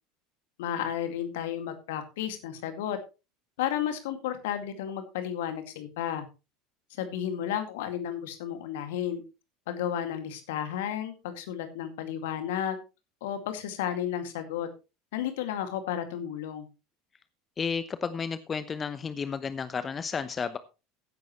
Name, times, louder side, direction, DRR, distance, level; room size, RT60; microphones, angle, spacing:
voice 1, 0.6-3.0 3.6-6.3 7.0-9.2 9.7-12.8 13.2-14.7 15.1-16.7, left 10 dB, 65° left, 8 dB, 2.2 m, -32 dB
voice 2, 17.6-20.6, left 6 dB, 30° left, 13 dB, 0.9 m, -32 dB
15.0 x 10.5 x 3.1 m, 0.30 s
figure-of-eight pair, 70°, 0 cm